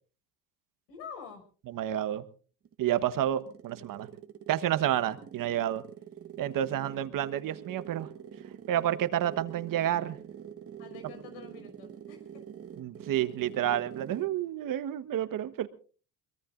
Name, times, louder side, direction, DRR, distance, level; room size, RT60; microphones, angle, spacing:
voice 1, 0.9-1.4 10.8-12.4, left 6 dB, 80° left, 5 dB, 5.9 m, -47 dB
voice 2, 1.7-2.2 2.8-4.1 4.5-5.8 6.4-8.1 8.7-10.2 12.8-15.7, right 11 dB, 50° right, 12 dB, 1.3 m, -30 dB
sound 1, 2.7-14.4, right 8 dB, 35° right, 1.5 m, -46 dB
23.5 x 22.0 x 2.5 m, 0.39 s
supercardioid pair, 90°, 41 cm